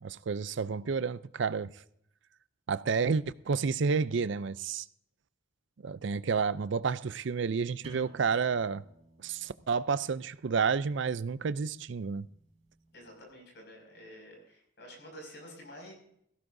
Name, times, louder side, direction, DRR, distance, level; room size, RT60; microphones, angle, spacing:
voice 1, 0.0-1.7 2.7-4.9 5.8-8.8 9.2-12.3, right 5 dB, 60° right, 0.4 m, -30 dB
sound 1, 7.8-13.2, equal, 35° right, 5.4 m, -55 dB
voice 2, 12.9-15.9, equal, 55° left, 6.0 m, -49 dB
18.0 x 16.0 x 2.7 m
head